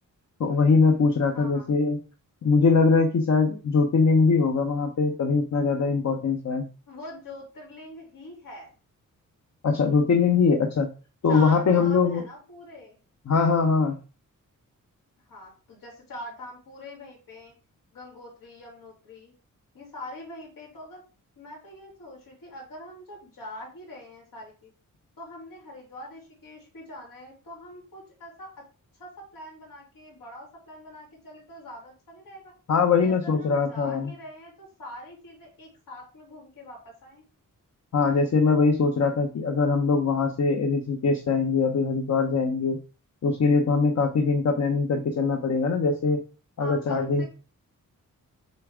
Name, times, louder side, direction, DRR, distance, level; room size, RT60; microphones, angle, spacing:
voice 1, 0.4-2.0 2.4-6.7 9.6-10.9 11.2-12.2 13.3-14.0 32.7-34.1 37.9-42.8 43.2-46.2 46.6-47.2, left 4 dB, 55° left, 4 dB, 0.9 m, -22 dB
voice 2, 1.3-1.7 6.9-8.7 11.3-13.0 15.3-17.5 17.9-19.3 19.7-21.0 21.4-24.7 25.2-28.6 29.0-32.5 33.0-37.2 46.6-47.3, left 1 dB, 90° left, -1 dB, 3.9 m, -43 dB
7.4 x 3.4 x 4.9 m, 0.35 s
wide cardioid pair, 160°, 33 cm